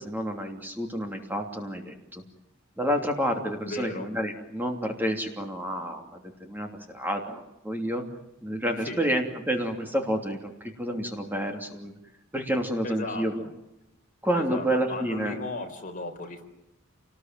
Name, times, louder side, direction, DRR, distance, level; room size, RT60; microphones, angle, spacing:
voice 1, 0.0-2.2 2.8-6.1 6.4-8.1 8.4-11.9 12.3-13.4 14.2-15.4, equal, 10° right, 3 dB, 2.9 m, -29 dB
voice 2, 3.6-4.1 8.9-9.0 12.8-13.5 14.3-16.4, left 2 dB, 40° left, 3 dB, 4.2 m, -36 dB
29.0 x 20.0 x 9.2 m, 0.89 s
head